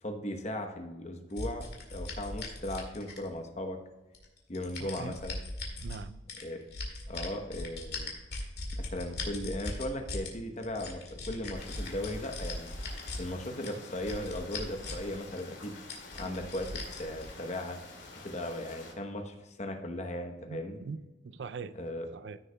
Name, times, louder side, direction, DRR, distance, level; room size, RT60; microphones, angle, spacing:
voice 1, 0.0-3.8 4.5-5.4 6.4-6.6 7.1-8.1 8.8-12.7 13.1-15.7 16.1-17.8 18.2-20.8 21.7-22.1, left 1 dB, 40° left, 4 dB, 1.0 m, -37 dB
sound 1, 1.4-3.5 4.1-6.0 6.3-10.3 10.6-13.2 13.6-15.1 15.4-15.5 15.9-17.2, left 2 dB, 60° left, 2.1 m, -39 dB
voice 2, 4.8-5.2 5.8-6.2 20.5-21.8 22.1-22.4, right 5 dB, 70° right, 13 dB, 0.4 m, -42 dB
sound 2, 11.5-18.9, left 3 dB, 80° left, 2.3 m, -49 dB
14.5 x 6.6 x 2.3 m, 1.1 s
head